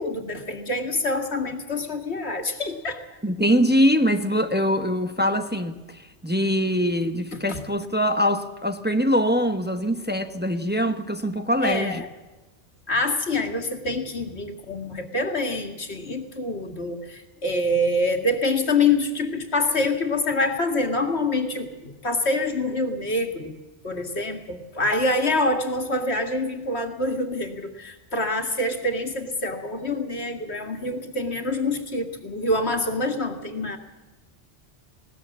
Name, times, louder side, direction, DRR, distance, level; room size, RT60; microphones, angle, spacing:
voice 1, 0.0-3.0 7.5-7.6 11.6-12.1 12.9-23.6 23.8-33.8, left 2 dB, 65° left, 2.4 m, -26 dB
voice 2, 3.2-12.0, equal, 10° right, 1.0 m, -23 dB
20.0 x 18.5 x 7.3 m
omnidirectional pair, 1.2 m